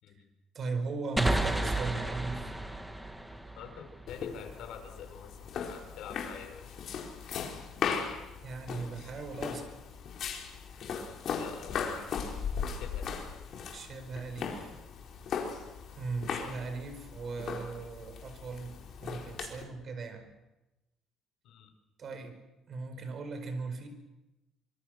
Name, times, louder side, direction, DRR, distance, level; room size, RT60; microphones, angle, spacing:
voice 1, 0.5-2.5 8.4-9.7 13.7-14.7 15.9-20.3 22.0-22.4 22.7-23.9, right 4 dB, 40° right, 8 dB, 4.9 m, -38 dB
sound 1, 1.2-4.6, right 1 dB, 5° right, 1.7 m, -33 dB
voice 2, 3.6-6.8 7.4-7.5 8.9-9.2 10.7-10.8 11.3-12.1 12.7-13.2 21.4-21.7, left 7 dB, 70° left, 5 dB, 5.2 m, -47 dB
sound 2, 4.1-19.6, left 6 dB, 50° left, 4.6 m, -38 dB
25.5 x 25.0 x 6.6 m, 0.99 s
cardioid pair, 145°, 0 cm